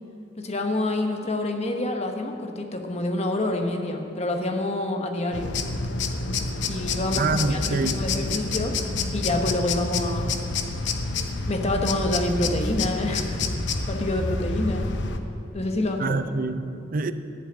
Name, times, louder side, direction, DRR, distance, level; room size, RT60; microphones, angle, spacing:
voice 1, 0.4-5.5 6.7-8.8 9.1-10.5 11.5-13.4 13.9-14.9 15.5-16.2, left 1 dB, 35° left, 4 dB, 1.1 m, -27 dB
sound 1, 5.3-15.2, left 3 dB, 75° left, 0.8 m, -28 dB
voice 2, 7.2-8.0 16.0-17.1, right 3 dB, 50° right, 11 dB, 0.5 m, -26 dB
11.5 x 7.5 x 8.8 m, 2.7 s
head